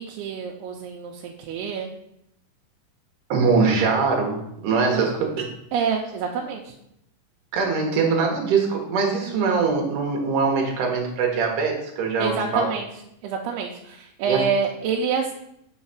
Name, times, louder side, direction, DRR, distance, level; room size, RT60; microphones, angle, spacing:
voice 1, 0.0-1.9 4.9-5.1 5.7-6.7 12.2-12.9 13.2-15.3, right 6 dB, 90° right, -1 dB, 2.6 m, -27 dB
voice 2, 3.3-5.1 7.5-12.7 14.3-14.5, right 4 dB, 65° right, 0 dB, 2.6 m, -22 dB
6.4 x 4.0 x 5.7 m, 0.77 s
omnidirectional pair, 4.6 m